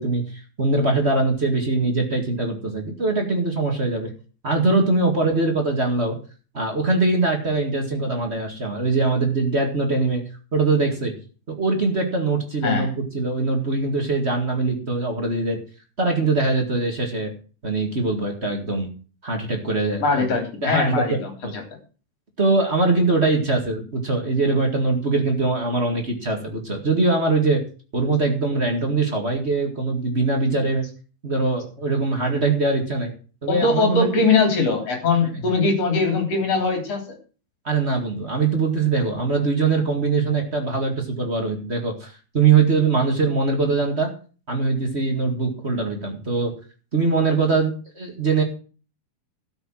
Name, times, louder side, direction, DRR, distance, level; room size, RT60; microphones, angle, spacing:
voice 1, 0.0-4.1 4.4-6.2 6.5-10.2 10.5-11.1 11.5-15.6 16.0-17.3 17.6-18.9 19.2-20.3 20.6-21.2 21.4-21.5 22.4-27.6 27.9-30.8 31.2-33.1 33.4-34.1 37.6-44.1 44.5-46.5 46.9-48.4, right 3 dB, 25° right, 2 dB, 1.5 m, -22 dB
voice 2, 12.6-13.0 20.0-21.6 33.5-37.2, left 4 dB, 45° left, 3 dB, 4.3 m, -21 dB
12.5 x 7.1 x 7.5 m, 0.38 s
omnidirectional pair, 4.2 m